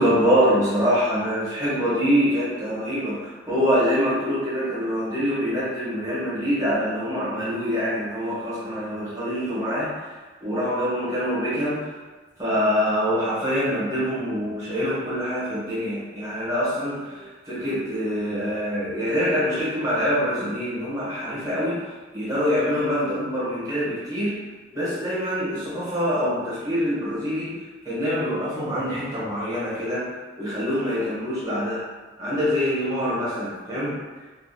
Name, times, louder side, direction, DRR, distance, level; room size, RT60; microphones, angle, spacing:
voice 1, 0.0-9.9 10.4-11.9 12.4-21.8 22.1-24.4 24.7-27.6 27.8-30.1 30.4-31.8 32.2-34.0, equal, 20° right, -10 dB, 0.9 m, -25 dB
2.5 x 2.3 x 2.6 m, 1.3 s
head